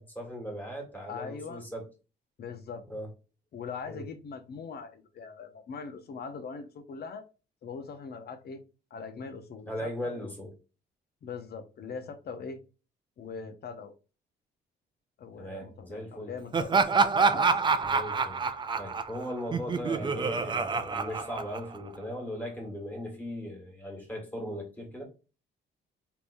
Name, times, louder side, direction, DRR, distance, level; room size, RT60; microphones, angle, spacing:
voice 1, 0.0-1.9 2.9-3.1 3.8-4.0 9.7-10.5 15.4-16.3 17.8-18.4 18.8-25.0, equal, 10° left, 1.7 m, -38 dB
voice 2, 1.1-1.6 2.4-2.9 3.5-7.2 7.6-8.6 8.9-10.3 11.2-12.6 13.2-13.9 15.2-16.9 17.3-17.6, left 5 dB, 55° left, 0.7 m, -41 dB
Laughter, 16.5-22.0, right 4 dB, 25° right, 0.4 m, -27 dB
3.6 x 2.9 x 2.6 m
cardioid pair, 90°, 20 cm